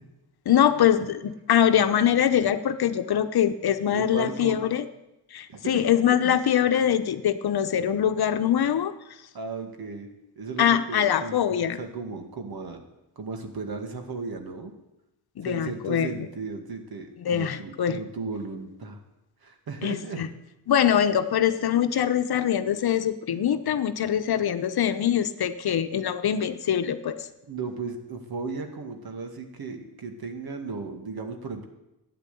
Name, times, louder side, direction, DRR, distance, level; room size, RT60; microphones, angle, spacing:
voice 1, 0.5-4.8 5.3-8.9 10.6-11.8 15.4-16.1 17.2-18.0 19.8-20.3 20.7-27.3, left 9 dB, 65° left, 10 dB, 1.0 m, -23 dB
voice 2, 3.9-4.6 5.5-6.4 9.3-10.1 10.4-12.8 13.2-14.7 15.4-19.0 19.4-20.3 23.3-23.4 27.5-31.7, right 4 dB, 65° right, 5 dB, 2.2 m, -35 dB
12.5 x 9.3 x 8.5 m, 0.93 s
cardioid pair, 95°, 40 cm